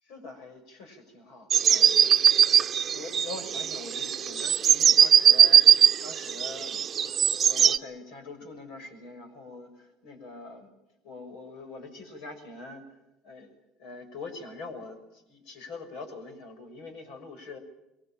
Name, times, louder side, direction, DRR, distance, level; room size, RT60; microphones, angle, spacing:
voice 1, 0.0-10.7 11.0-13.5 13.8-17.6, left 3 dB, 75° left, 7 dB, 6.2 m, -44 dB
sound 1, 1.5-7.8, right 8 dB, 35° right, 0.9 m, -20 dB
23.0 x 20.0 x 8.9 m, 0.90 s
supercardioid pair, 105°, 0 cm